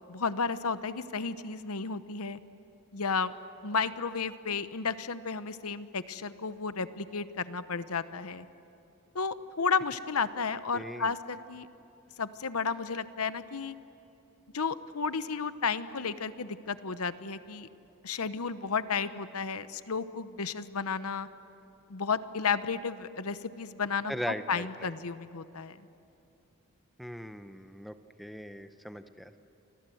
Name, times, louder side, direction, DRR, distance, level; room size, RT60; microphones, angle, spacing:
voice 1, 0.1-2.4 2.9-3.3 3.6-8.5 9.1-11.7 12.2-13.7 14.5-17.7 18.0-21.3 21.9-24.1 24.5-25.8, left 5 dB, 80° left, 13 dB, 1.0 m, -32 dB
voice 2, 10.7-11.1 24.1-24.9 27.0-29.4, equal, ahead, 9 dB, 0.7 m, -39 dB
29.5 x 25.0 x 7.8 m, 2.8 s
head